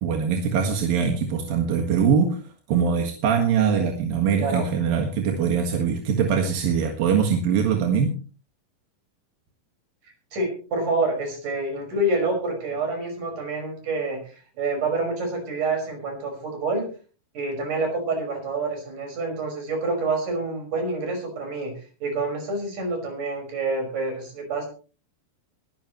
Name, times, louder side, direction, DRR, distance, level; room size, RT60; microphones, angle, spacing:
voice 1, 0.0-2.4 2.7-8.2, right 6 dB, 85° right, 3 dB, 3.5 m, -22 dB
voice 2, 4.3-4.7 10.3-16.9 17.3-21.7 22.0-24.7, right 2 dB, 65° right, 3 dB, 7.1 m, -27 dB
22.0 x 12.0 x 3.1 m, 0.37 s
omnidirectional pair, 4.0 m